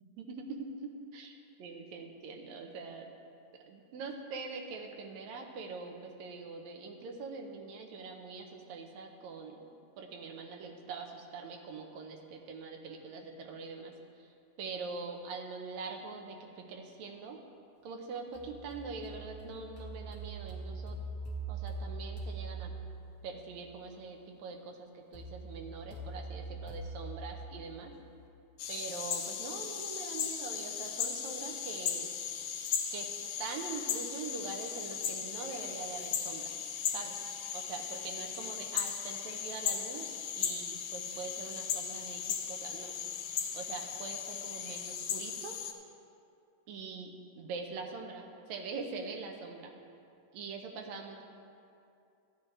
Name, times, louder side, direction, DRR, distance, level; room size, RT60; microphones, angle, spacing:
voice 1, 0.2-3.1 3.7-13.9 14.2-17.4 17.8-21.0 21.5-22.7 23.2-27.9 28.7-32.1 32.9-33.1 33.4-36.6 36.9-37.2 37.5-43.0 43.5-45.6 46.7-49.7 50.3-51.2, right 4 dB, 75° right, 2 dB, 2.1 m, -43 dB
sound 1, 18.3-23.3 25.1-28.1, right 3 dB, 40° left, 1.5 m, -42 dB
sound 2, 28.6-45.7, left 8 dB, 80° left, 1.4 m, -37 dB
14.0 x 10.0 x 3.3 m, 2.5 s
omnidirectional pair, 3.5 m